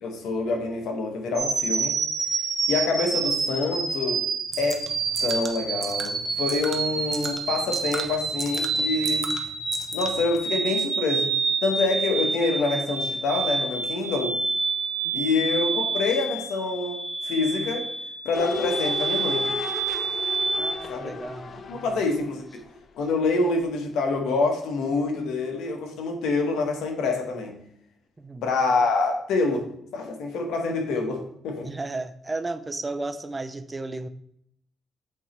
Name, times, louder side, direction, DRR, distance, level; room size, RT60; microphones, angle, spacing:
voice 1, 0.0-2.0 2.7-4.3 4.6-4.8 5.2-9.3 9.9-11.3 11.6-14.4 15.1-17.9 18.2-19.5 20.9-21.1 21.7-22.6 23.0-27.6 28.4-31.7, left 3 dB, 80° left, 1.3 m, -26 dB
sound 1, 1.3-20.7, right 4 dB, 65° right, 1.8 m, -28 dB
sound 2, 4.5-10.4, right 4 dB, 50° right, 0.9 m, -38 dB
sound 3, 18.3-23.3 23.6-23.7, left 4 dB, 50° left, 0.5 m, -35 dB
voice 2, 20.6-21.8 28.2-28.5 31.6-34.1, right 2 dB, 20° right, 0.5 m, -34 dB
8.0 x 3.0 x 4.4 m
cardioid pair, 90°, 0 cm